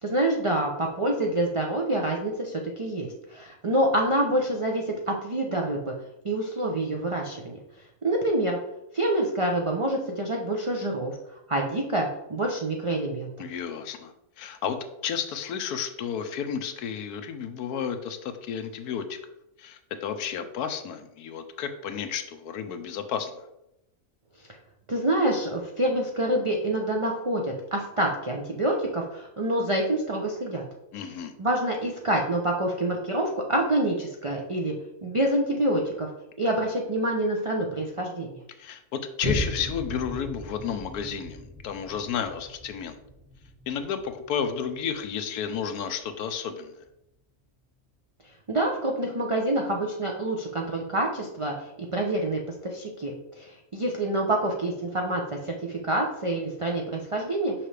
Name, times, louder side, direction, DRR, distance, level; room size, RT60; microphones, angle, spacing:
voice 1, 0.0-5.9 6.2-7.6 8.0-8.6 8.9-11.2 11.5-13.3 24.9-30.6 31.4-34.7 35.0-36.1 36.4-38.3 48.5-57.5, right 1 dB, 60° right, 0 dB, 0.3 m, -27 dB
voice 2, 13.4-19.2 19.6-23.5 30.9-31.3 38.6-43.0 43.7-46.8, left 7 dB, 85° left, 8 dB, 1.2 m, -32 dB
Boom, 39.2-46.1 46.7-46.8, left 1 dB, 30° right, 1.3 m, -37 dB
5.8 x 5.4 x 3.3 m, 0.87 s
omnidirectional pair, 1.6 m